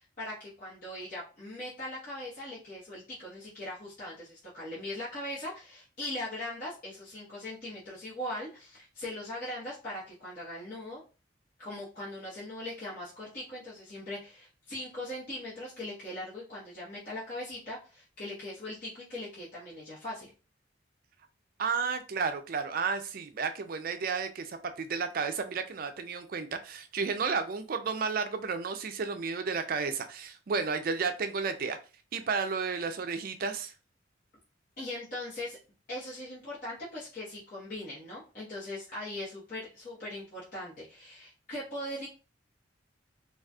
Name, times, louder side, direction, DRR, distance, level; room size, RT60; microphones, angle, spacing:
voice 1, 0.2-11.0 11.6-20.3 34.8-35.6 35.9-42.1, left 1 dB, 45° left, 1.0 m, -40 dB
voice 2, 21.6-31.8 32.1-33.7, right 5 dB, 45° right, 0.4 m, -32 dB
4.0 x 2.3 x 2.3 m
head